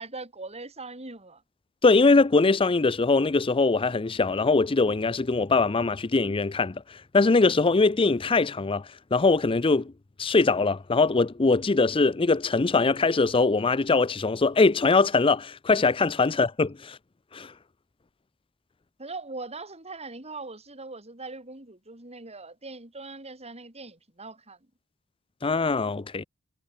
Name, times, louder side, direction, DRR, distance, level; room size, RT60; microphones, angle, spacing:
voice 1, 0.0-1.4 16.3-16.4 19.0-24.6, right 3 dB, 30° right, 4.7 m, -41 dB
voice 2, 1.8-9.9 10.2-17.0 17.3-17.5 25.4-26.2, left 3 dB, 25° left, 0.5 m, -22 dB
head